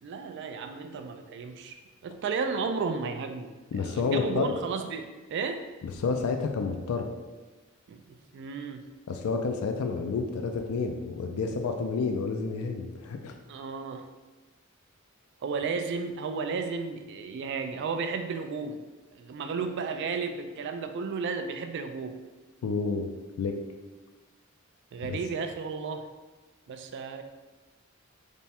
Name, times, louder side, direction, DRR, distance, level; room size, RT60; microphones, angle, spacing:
voice 1, 0.0-5.7 7.9-8.8 13.5-14.1 15.4-18.8 19.1-22.2 24.9-26.1 26.7-27.2, right 5 dB, 55° right, 7 dB, 0.3 m, -33 dB
voice 2, 3.7-4.6 6.0-7.1 9.1-13.4 22.6-23.1 23.4-23.5 25.0-25.2, left 4 dB, 85° left, 4 dB, 0.3 m, -29 dB
3.4 x 2.1 x 4.2 m, 1.2 s
head